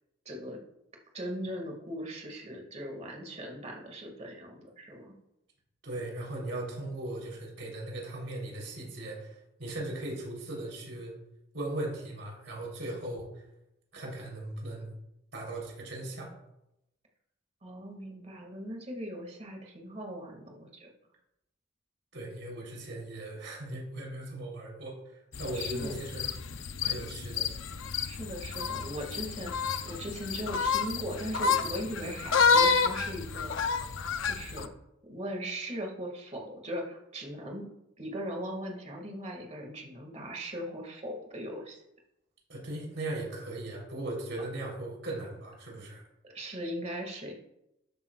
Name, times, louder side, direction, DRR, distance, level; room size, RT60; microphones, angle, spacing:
voice 1, 0.3-0.6 1.1-5.1 17.6-20.9 25.5-26.0 26.9-27.0 28.1-33.5 34.2-34.7 35.0-37.7 38.0-41.8 46.3-47.3, equal, 35° right, 1 dB, 2.0 m, -39 dB
voice 2, 5.8-11.1 11.5-13.4 13.9-14.9 15.3-16.3 22.1-26.3 26.8-27.5 42.5-46.0, right 1 dB, 75° right, -2 dB, 3.5 m, -38 dB
sound 1, 25.3-34.7, left 5 dB, 85° left, 0.6 m, -29 dB
13.0 x 9.2 x 2.4 m, 0.86 s
head